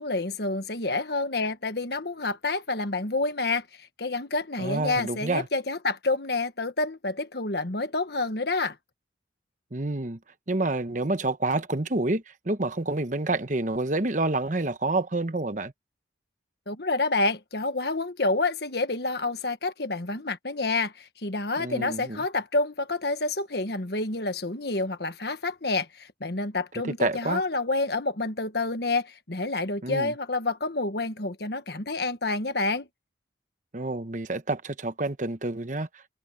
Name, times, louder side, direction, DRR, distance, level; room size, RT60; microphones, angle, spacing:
voice 1, 0.0-8.8 16.7-32.9, left 3 dB, 60° left, 1.5 m, -28 dB
voice 2, 4.6-5.5 9.7-10.2 10.5-15.7 21.6-22.2 26.8-27.4 29.8-30.1 33.7-36.1, right 2 dB, 45° right, 1.1 m, -28 dB
head